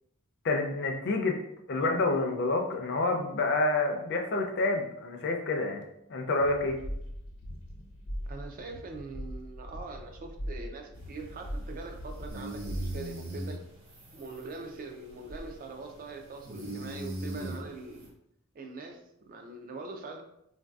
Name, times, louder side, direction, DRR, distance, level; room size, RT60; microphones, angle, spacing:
voice 1, 0.4-1.4 1.7-5.8 6.1-6.8, left 2 dB, 50° left, 2 dB, 0.5 m, -28 dB
sound 1, 6.4-13.2, equal, 90° left, 0.8 m, -40 dB
voice 2, 8.3-13.6 14.1-18.1 18.5-20.2, right 3 dB, 40° right, 4 dB, 0.3 m, -43 dB
sound 2, 10.9-18.1, right 1 dB, 70° right, 1.2 m, -41 dB
3.7 x 2.6 x 2.3 m, 0.78 s
head